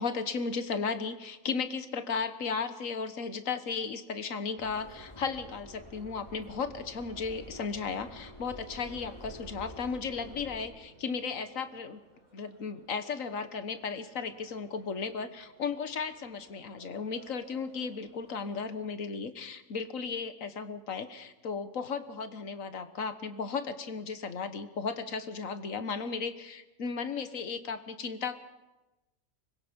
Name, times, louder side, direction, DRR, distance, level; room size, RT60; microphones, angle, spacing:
voice 1, 0.0-12.0 12.3-28.4, left 5 dB, 70° left, 10 dB, 1.6 m, -35 dB
Subway metro underground, 4.6-10.7, equal, 20° left, 3.6 m, -48 dB
sound 1, 10.2-18.9, right 2 dB, 85° right, 4.2 m, -61 dB
24.5 x 21.5 x 5.3 m, 1.0 s
omnidirectional pair, 1.5 m